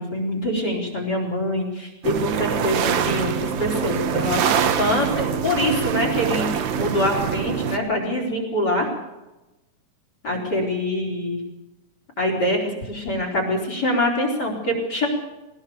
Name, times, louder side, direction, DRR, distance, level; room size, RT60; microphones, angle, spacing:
voice 1, 0.0-8.9 10.2-11.4 12.2-15.1, left 1 dB, 35° left, 3 dB, 4.8 m, -24 dB
sound 1, 2.0-7.8, right 8 dB, 70° right, 2.5 m, -24 dB
20.0 x 18.5 x 7.1 m, 1.0 s
omnidirectional pair, 3.4 m